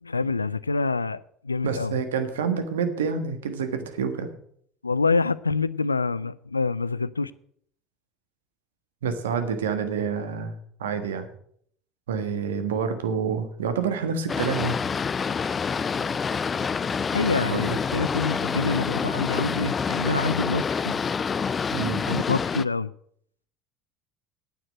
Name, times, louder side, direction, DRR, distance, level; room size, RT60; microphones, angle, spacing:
voice 1, 0.0-1.9 4.8-7.3 17.1-21.0 22.1-22.9, left 3 dB, 90° left, 0.4 m, -26 dB
voice 2, 1.6-4.3 9.0-11.3 12.1-14.8 17.4-17.8 21.7-22.1, right 6 dB, 75° right, 1.4 m, -28 dB
Boat Water vehicle, 14.3-22.6, left 6 dB, 30° left, 0.4 m, -27 dB
9.2 x 8.6 x 7.8 m
figure-of-eight pair, 70°, 0 cm